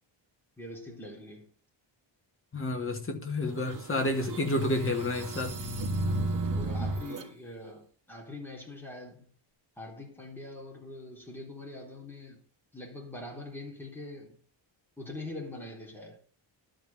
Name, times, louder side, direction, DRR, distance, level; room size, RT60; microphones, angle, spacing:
voice 1, 0.6-1.5 6.5-9.3 9.8-12.4 12.7-14.4 15.0-16.2, left 2 dB, 5° left, 3.5 m, -43 dB
voice 2, 2.5-5.6, left 1 dB, 25° left, 2.1 m, -30 dB
sound 1, 3.5-7.3, right 2 dB, 40° right, 2.1 m, -33 dB
12.0 x 5.4 x 7.0 m
wide cardioid pair, 150°, 48 cm